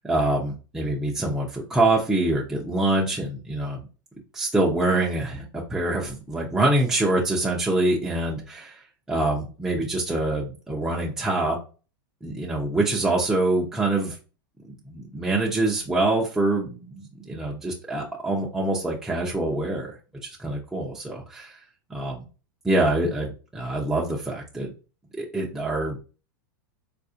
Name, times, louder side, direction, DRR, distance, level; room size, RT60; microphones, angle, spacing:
voice 1, 0.0-3.8 4.3-8.8 9.1-11.6 12.2-14.2 14.6-19.9 20.2-21.6 21.9-22.3 22.6-24.7 25.2-26.0, right 2 dB, 5° right, -4 dB, 0.6 m, -25 dB
4.0 x 2.5 x 2.6 m, 0.34 s
supercardioid pair, 125°, 12 cm